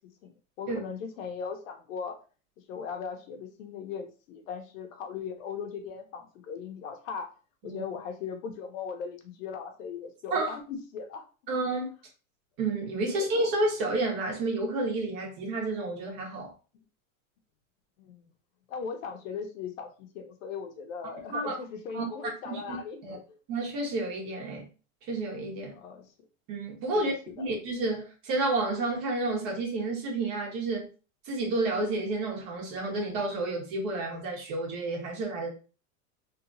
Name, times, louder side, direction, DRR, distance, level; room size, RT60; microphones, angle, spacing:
voice 1, 0.6-2.2 2.7-7.3 7.6-11.2 13.0-13.2 18.0-18.3 18.7-23.0 23.3-23.4 25.7-26.1 26.9-27.5, left 6 dB, 70° left, 0.8 m, -38 dB
voice 2, 11.5-11.9 12.6-16.5 21.3-21.5 21.9-22.0 22.4-22.8 23.0-23.2 23.5-24.7 25.1-25.8 26.5-30.9 31.2-35.5, right 2 dB, 45° right, 1.2 m, -30 dB
2.9 x 2.4 x 2.6 m
supercardioid pair, 145°, 41 cm